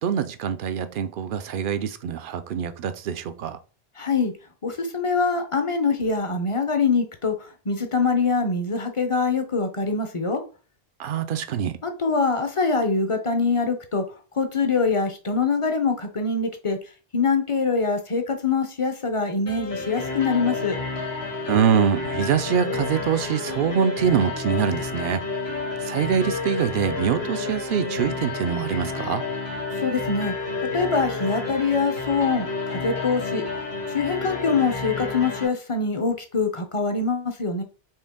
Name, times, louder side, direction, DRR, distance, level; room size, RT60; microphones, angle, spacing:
voice 1, 0.0-3.6 11.0-11.8 21.4-25.3 25.8-29.2, right 8 dB, 65° right, 0.6 m, -24 dB
voice 2, 4.0-4.3 4.6-10.4 11.8-14.0 14.3-16.8 17.1-20.8 29.8-30.3 30.7-33.4 33.9-37.6, left 4 dB, 35° left, 0.6 m, -24 dB
sound 1, 19.5-35.5, left 3 dB, 75° left, 1.8 m, -30 dB
4.4 x 3.3 x 3.6 m
omnidirectional pair, 1.0 m